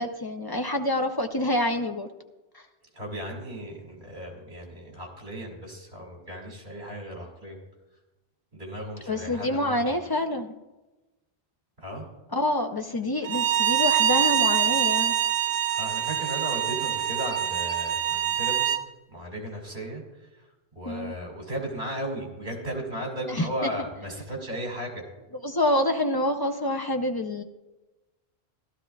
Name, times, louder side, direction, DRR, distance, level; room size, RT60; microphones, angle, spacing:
voice 1, 0.0-2.1 2.5-2.6 9.1-10.5 12.3-15.1 20.9-21.1 23.3-23.5 25.4-27.4, left 1 dB, 30° left, 4 dB, 0.5 m, -27 dB
voice 2, 2.9-7.6 8.5-9.8 11.8-12.1 15.7-18.7 19.1-20.5 20.7-25.0, equal, 50° right, 0 dB, 2.5 m, -36 dB
Bowed string instrument, 13.2-18.8, right 10 dB, 80° right, 0.9 m, -25 dB
16.0 x 12.5 x 2.3 m, 1.1 s
omnidirectional pair, 1.1 m